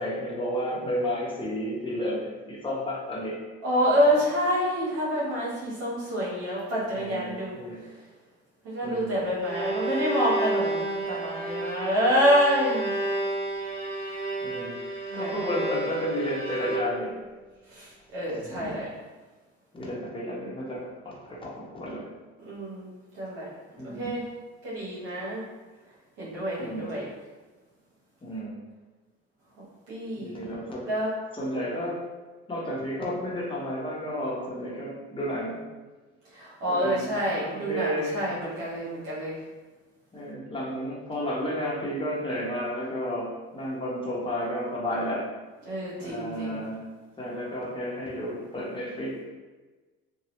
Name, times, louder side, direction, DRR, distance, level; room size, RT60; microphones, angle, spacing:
voice 1, 0.0-3.4 6.9-7.8 8.8-9.2 14.4-14.8 15.1-17.2 18.4-18.8 19.7-22.1 23.8-24.2 26.6-26.9 28.2-28.5 30.1-30.9 31.3-32.0 32.5-35.6 36.7-38.3 40.1-45.3 46.0-46.8 47.2-49.2, equal, 15° left, -4 dB, 0.9 m, -32 dB
voice 2, 3.6-7.9 8.6-12.9 15.1-15.9 17.7-18.9 22.4-22.9 23.2-23.5 23.8-24.2 24.6-25.4 26.2-27.1 29.9-30.4 30.8-31.1 36.3-39.4 45.6-46.6, equal, 85° right, -7 dB, 0.9 m, -27 dB
Bowed string instrument, 9.3-17.2, right 2 dB, 45° right, 1.2 m, -31 dB
2.7 x 2.3 x 3.0 m, 1.3 s
supercardioid pair, 85°, 29 cm